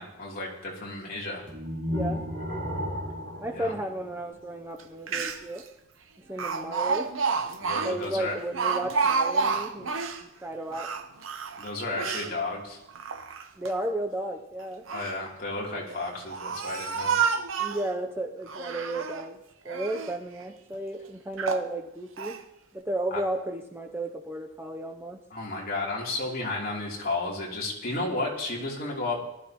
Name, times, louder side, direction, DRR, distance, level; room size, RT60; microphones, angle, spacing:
voice 1, 0.0-1.4 3.5-3.7 7.6-8.4 11.6-12.8 14.9-17.2 23.1-23.2 25.3-29.2, left 2 dB, 45° left, -4 dB, 3.2 m, -33 dB
sound 1, 1.5-4.6, left 1 dB, 60° right, 3.4 m, -34 dB
voice 2, 1.9-2.2 3.4-5.6 6.3-7.1 7.8-9.9 10.2-10.9 13.6-14.8 17.6-19.4 19.6-22.3 22.7-25.2, right 1 dB, 10° right, 3 dB, 0.6 m, -33 dB
Speech, 4.8-4.9 5.1-5.6 6.4-10.2 10.7-12.3 12.9-13.7 14.6-15.2 15.9-17.9 18.5-19.3 19.7-20.2 20.7-20.8 21.4-21.7 22.2-22.4, right 5 dB, 75° right, 0.9 m, -29 dB
19.0 x 12.5 x 3.0 m, 0.88 s
head